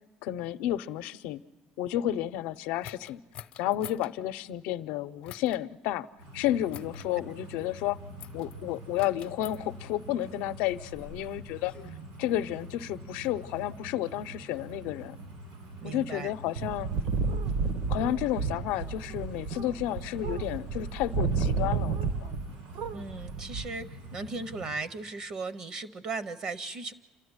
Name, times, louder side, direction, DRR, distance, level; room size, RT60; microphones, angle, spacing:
voice 1, 0.2-1.4 1.8-3.2 3.6-6.1 6.3-8.0 8.3-11.7 12.2-15.2 15.8-16.9 17.9-22.3, left 13 dB, 90° left, 12 dB, 0.6 m, -31 dB
sound 1, 2.8-4.1 5.2-5.6 6.7-7.1 8.2-8.5 9.0-9.6 10.5-11.9, left 11 dB, 55° left, 0.6 m, -47 dB
sound 2, 6.2-24.7, right 1 dB, 90° right, 7.8 m, -46 dB
voice 2, 15.8-16.3 22.9-26.9, right 3 dB, 45° right, 14 dB, 0.7 m, -37 dB
sound 3, 16.6-22.5 22.7-23.7, right 5 dB, 70° right, 1.0 m, -31 dB
29.0 x 13.0 x 9.6 m, 1.2 s
cardioid pair, 150°, 2 cm